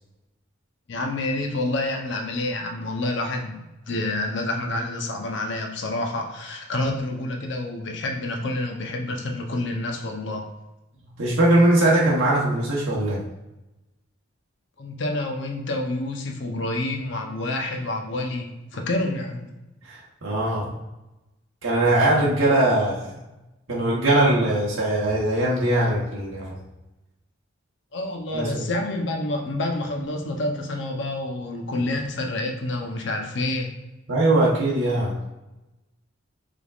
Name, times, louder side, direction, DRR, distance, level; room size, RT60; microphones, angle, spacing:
voice 1, 0.9-10.5 14.8-19.5 27.9-33.7, left 2 dB, 60° left, 2 dB, 0.7 m, -28 dB
voice 2, 11.2-13.2 19.8-20.7 21.6-23.2 23.7-26.6 28.3-28.6 34.1-35.2, right 1 dB, 75° right, -5 dB, 1.0 m, -21 dB
5.0 x 3.5 x 2.4 m, 1.0 s
head